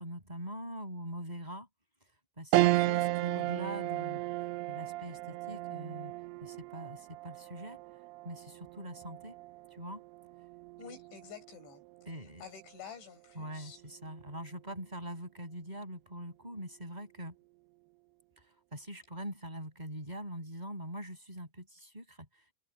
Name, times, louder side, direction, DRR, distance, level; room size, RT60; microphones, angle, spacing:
voice 1, 0.0-1.7 2.4-4.2 4.7-6.1 6.4-7.8 8.2-9.3 9.7-10.0 10.8-10.9 12.1-12.4 13.3-17.3 18.4-22.4, equal, 10° right, 5.9 m, -43 dB
sound 1, 2.5-12.1 12.6-12.7 14.0-14.5, right 19 dB, 90° right, 2.3 m, -34 dB
voice 2, 10.8-11.8 12.4-13.8, left 6 dB, 75° left, 8.3 m, -49 dB
omnidirectional pair, 5.4 m